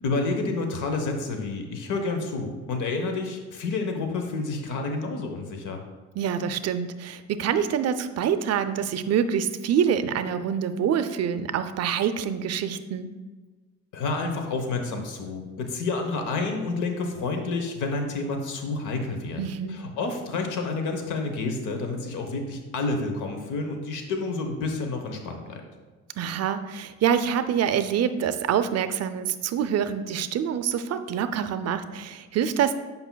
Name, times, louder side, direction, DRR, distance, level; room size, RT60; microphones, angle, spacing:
voice 1, 0.0-5.8 13.9-19.4 19.7-25.6, left 3 dB, 85° left, 5 dB, 0.9 m, -29 dB
voice 2, 6.2-13.1 19.4-19.8 26.2-32.8, right 8 dB, 55° right, 11 dB, 0.5 m, -26 dB
8.0 x 5.3 x 2.2 m, 1.3 s
cardioid pair, 90°, 30 cm